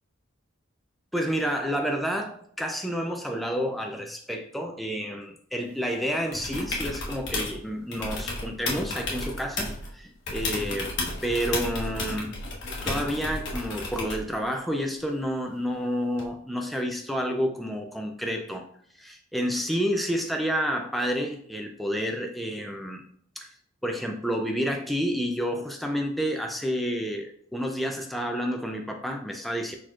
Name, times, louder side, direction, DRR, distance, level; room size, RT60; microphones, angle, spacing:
voice 1, 1.1-10.9 11.2-12.4 12.8-18.6 19.0-23.0 23.4-23.5 23.8-29.7, equal, ahead, 2 dB, 0.3 m, -29 dB
sound 1, 6.3-7.6 7.9-9.9 10.3-14.3 16.2-16.3, left 2 dB, 60° left, 1.1 m, -32 dB
4.4 x 4.2 x 2.4 m, 0.62 s
head